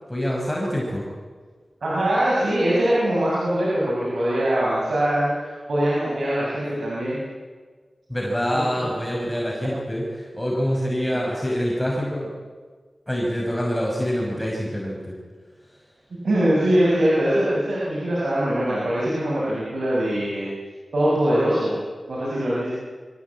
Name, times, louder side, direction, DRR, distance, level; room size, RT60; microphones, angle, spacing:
voice 1, 0.1-1.1 8.1-12.3 13.1-15.2, equal, 5° left, -3 dB, 5.8 m, -25 dB
voice 2, 1.8-7.2 8.5-8.9 11.1-11.2 16.2-20.5 20.9-21.7 22.1-22.7, right 1 dB, 80° right, -7 dB, 7.0 m, -22 dB
25.5 x 15.5 x 8.6 m, 1.5 s
wide cardioid pair, 60°, 0 cm